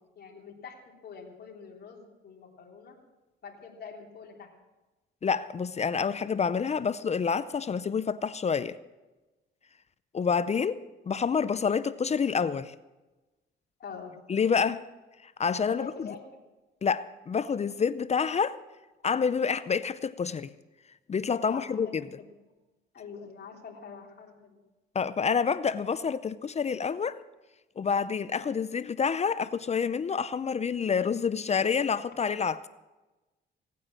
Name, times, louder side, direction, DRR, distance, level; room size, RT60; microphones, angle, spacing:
voice 1, 0.1-0.8 1.0-2.9 3.4-4.5 13.8-14.1 15.7-16.2 21.5-22.3 22.9-24.6 28.3-28.5, left 6 dB, 55° left, 3.4 m, -45 dB
voice 2, 5.2-8.8 10.1-10.8 11.1-12.8 14.3-14.8 15.2-16.1 16.8-18.6 19.0-20.5 21.1-22.0 24.9-27.2 27.8-32.6, left 6 dB, 35° left, 0.6 m, -28 dB
17.0 x 9.3 x 7.5 m
cardioid pair, 90°, 20 cm